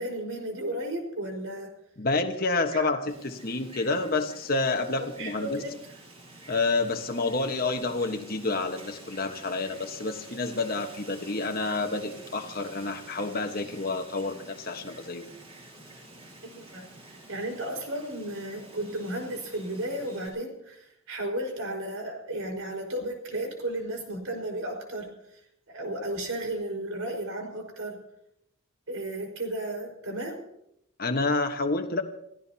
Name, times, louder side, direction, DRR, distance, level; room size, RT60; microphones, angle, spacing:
voice 1, 0.0-1.7 2.7-2.9 5.2-5.8 16.5-16.9 17.3-25.1 25.7-28.0 28.9-30.4, right 1 dB, 85° right, 2 dB, 4.9 m, -34 dB
voice 2, 2.0-5.6 6.5-15.3 31.0-32.0, left 3 dB, 45° left, 5 dB, 1.3 m, -29 dB
Wind, 3.1-20.3, right 2 dB, 30° right, 6.7 m, -49 dB
27.0 x 16.5 x 2.9 m, 0.78 s
head